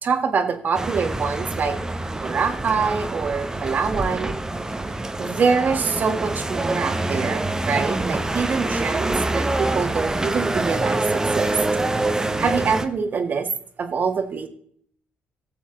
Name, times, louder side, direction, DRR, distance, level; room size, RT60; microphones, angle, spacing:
voice 1, 0.0-1.8 2.2-4.4 5.2-11.5 12.4-13.5 13.8-14.5, right 5 dB, 50° right, 6 dB, 1.6 m, -24 dB
sound 1, 0.7-12.9, right 2 dB, 15° right, 1.0 m, -25 dB
17.0 x 7.0 x 3.9 m, 0.62 s
cardioid pair, 80°, 4 cm